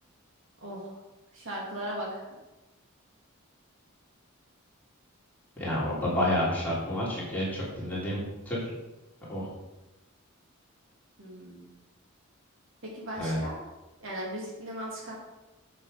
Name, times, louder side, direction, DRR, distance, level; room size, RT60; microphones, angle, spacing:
voice 1, 0.6-1.0 1.3-2.3 11.2-11.7 12.8-13.6 14.0-15.1, equal, 65° right, -4 dB, 3.1 m, -37 dB
voice 2, 5.6-8.7 9.3-9.5 13.2-13.4, left 1 dB, 10° left, -8 dB, 3.5 m, -29 dB
8.3 x 7.4 x 5.3 m, 1.0 s
head